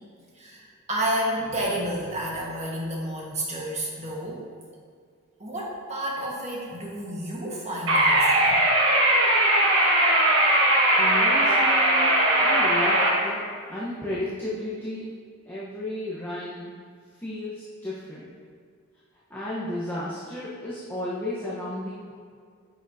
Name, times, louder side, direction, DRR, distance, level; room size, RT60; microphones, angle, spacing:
voice 1, 0.3-4.5 5.4-8.6 12.6-12.7, right 1 dB, 35° right, -4 dB, 1.5 m, -31 dB
sound 1, 7.9-13.1, right 1 dB, 70° right, 1.5 m, -19 dB
voice 2, 11.0-12.1 12.4-13.4 13.7-15.1 15.5-16.7 17.2-18.2 19.3-22.2, left 1 dB, 10° left, -8 dB, 1.0 m, -33 dB
10.0 x 6.4 x 2.8 m, 2.1 s
head